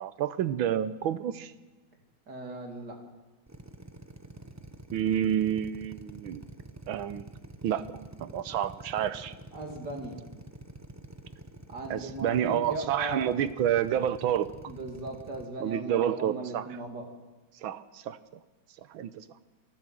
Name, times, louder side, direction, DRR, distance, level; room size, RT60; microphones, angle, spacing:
voice 1, 0.0-1.5 4.9-6.4 6.9-7.2 7.6-7.8 8.2-9.3 11.9-14.5 15.6-16.7 17.6-18.2 18.9-19.2, right 10 dB, 90° right, 13 dB, 1.7 m, -29 dB
voice 2, 2.3-3.0 9.5-10.2 11.7-13.3 14.6-17.1, right 2 dB, 55° right, 2 dB, 3.4 m, -38 dB
Drill, 3.5-15.4, right 2 dB, 20° right, 0.4 m, -47 dB
25.0 x 13.5 x 7.7 m, 1.2 s
omnidirectional pair, 2.2 m